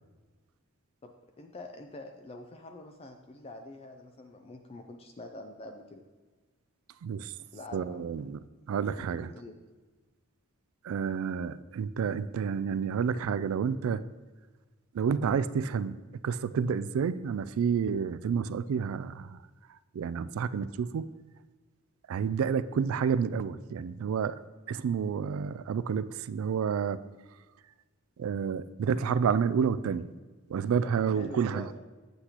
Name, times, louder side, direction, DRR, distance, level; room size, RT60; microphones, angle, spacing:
voice 1, 1.0-6.0 7.3-8.3 8.8-9.5 30.8-31.8, left 2 dB, 30° left, 5 dB, 0.4 m, -46 dB
voice 2, 7.0-7.3 7.7-8.4 8.7-9.3 10.8-14.0 14.9-19.4 19.9-21.1 22.1-24.4 24.7-27.0 28.2-30.1 30.5-31.7, right 6 dB, 70° right, 15 dB, 0.3 m, -29 dB
8.0 x 7.9 x 2.9 m, 1.3 s
head